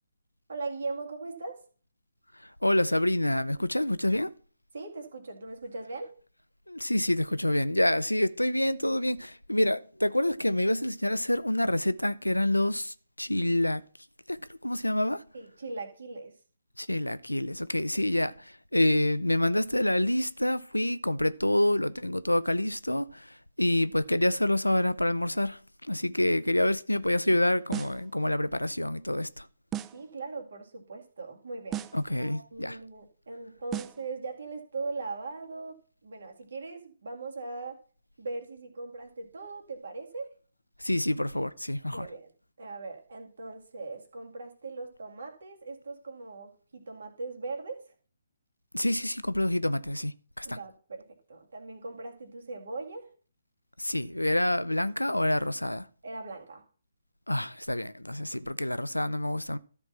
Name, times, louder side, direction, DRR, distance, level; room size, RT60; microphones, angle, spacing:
voice 1, 0.5-1.6 4.7-6.1 15.3-16.3 29.9-31.9 32.2-37.8 38.2-40.3 41.9-42.3 42.6-47.8 50.4-51.0 51.3-53.1 56.0-56.6, right 3 dB, 60° right, 2.1 m, -39 dB
voice 2, 2.3-4.3 6.7-13.8 14.3-15.3 16.8-29.5 31.9-32.8 40.8-42.1 48.7-50.6 53.8-55.9 57.3-59.6, left 1 dB, 90° left, 0.5 m, -27 dB
sound 1, 27.7-28.1 29.7-30.1 31.7-32.1 33.7-34.1, right 11 dB, 15° right, 0.4 m, -36 dB
13.0 x 4.4 x 5.9 m
figure-of-eight pair, 135°, 0 cm